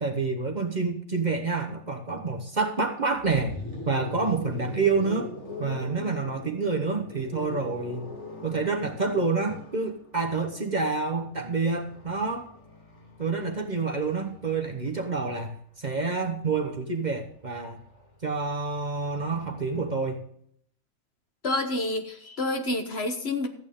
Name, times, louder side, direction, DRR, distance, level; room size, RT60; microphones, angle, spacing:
voice 1, 0.0-3.5 3.9-5.3 5.6-8.1 8.4-12.5 13.2-17.8 18.2-20.2, right 4 dB, 35° right, 5 dB, 1.1 m, -28 dB
sound 1, 3.1-15.1 16.4-20.0, left 1 dB, 25° left, 4.1 m, -42 dB
voice 2, 21.4-23.5, left 2 dB, 50° left, 6 dB, 1.4 m, -28 dB
13.5 x 8.8 x 3.7 m, 0.67 s
omnidirectional pair, 1.4 m